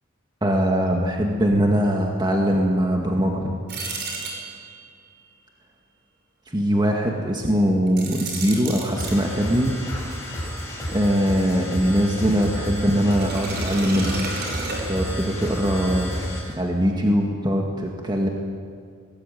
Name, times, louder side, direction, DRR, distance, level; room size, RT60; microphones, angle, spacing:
voice 1, 0.4-3.6 6.5-9.7 10.9-14.2 14.9-16.1 16.5-18.3, equal, 20° right, 0 dB, 1.9 m, -21 dB
sound 1, 3.7-4.9 7.9-9.2 13.1-15.3, right 3 dB, 50° right, 5.8 m, -32 dB
sound 2, 9.0-16.5, equal, 15° left, 6.8 m, -31 dB
23.5 x 19.0 x 9.3 m, 2.1 s
head